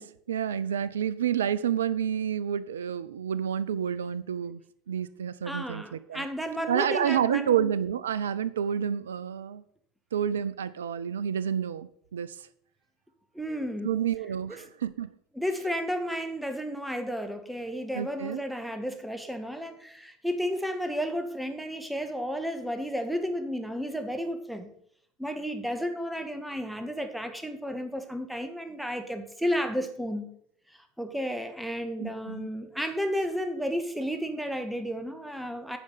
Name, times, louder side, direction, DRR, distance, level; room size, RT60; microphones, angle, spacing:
voice 1, 0.0-4.6 4.9-6.3 6.7-9.6 10.1-12.4 13.8-15.1 17.9-18.4 32.0-32.5, right 9 dB, 80° right, 17 dB, 0.3 m, -29 dB
voice 2, 5.4-7.7 13.3-13.9 15.3-24.7 25.2-30.3 31.0-35.8, equal, ahead, 7 dB, 1.4 m, -32 dB
9.3 x 5.1 x 5.4 m, 0.67 s
hypercardioid pair, 75°, 0 cm